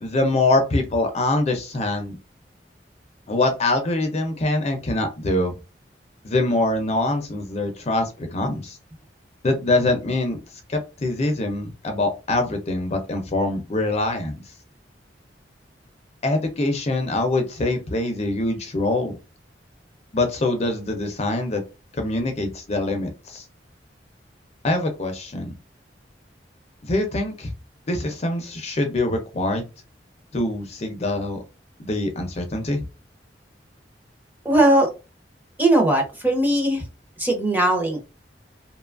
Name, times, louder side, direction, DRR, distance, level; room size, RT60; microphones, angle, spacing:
voice 1, 0.0-2.2 3.3-5.5 6.2-8.8 9.4-10.4 10.7-14.4 16.2-19.2 20.1-21.6 21.9-23.4 24.6-25.5 26.9-27.5 27.9-29.6 30.3-31.4 31.8-32.8, left 2 dB, 35° left, 4 dB, 0.5 m, -24 dB
voice 2, 34.4-34.9 35.6-36.8 37.2-38.0, right 1 dB, 10° right, 2 dB, 0.7 m, -19 dB
2.8 x 2.2 x 2.4 m, 0.29 s
head